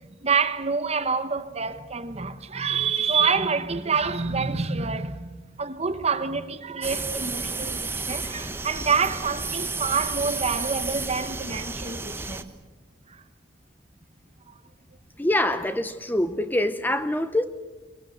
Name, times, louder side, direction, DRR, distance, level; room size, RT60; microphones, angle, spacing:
voice 1, 0.0-12.5 13.1-13.2, right 5 dB, 35° right, 1.2 m, -27 dB
sound 1, 6.8-12.4, right 3 dB, 15° right, 1.0 m, -32 dB
voice 2, 15.2-17.4, left 1 dB, 10° left, 0.7 m, -25 dB
23.0 x 22.5 x 7.9 m
head